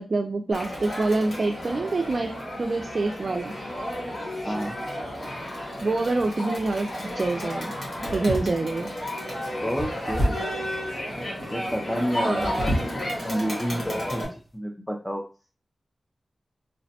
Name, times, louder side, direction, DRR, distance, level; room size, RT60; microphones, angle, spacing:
voice 1, 0.0-2.3 2.6-3.5 5.8-7.7 8.1-8.9 12.2-12.5, right 3 dB, 55° right, 3 dB, 0.3 m, -26 dB
Crowd, 0.5-14.2, equal, 60° left, 1.5 m, -33 dB
sound 1, 6.5-6.9 7.9-8.9 9.7-10.6 12.2-13.0 13.6-13.7 14.2-14.4, equal, 35° left, 1.1 m, -29 dB
voice 2, 9.6-10.5 11.5-15.3, equal, 10° left, 2 dB, 0.4 m, -30 dB
3.2 x 2.0 x 2.7 m, 0.36 s
wide cardioid pair, 65°, 0 cm